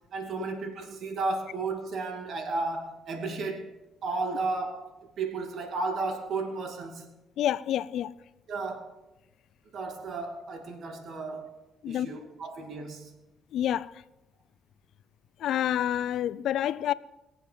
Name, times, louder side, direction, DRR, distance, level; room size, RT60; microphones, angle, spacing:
voice 1, 0.1-3.7 4.0-7.1 8.5-8.9 9.7-11.6 11.9-13.2, right 3 dB, 65° right, 2.4 m, -33 dB
voice 2, 7.4-8.1 11.8-12.1 13.5-14.0 15.4-16.9, left 11 dB, 75° left, 0.4 m, -28 dB
22.5 x 7.6 x 5.1 m
cardioid pair, 90°, 0 cm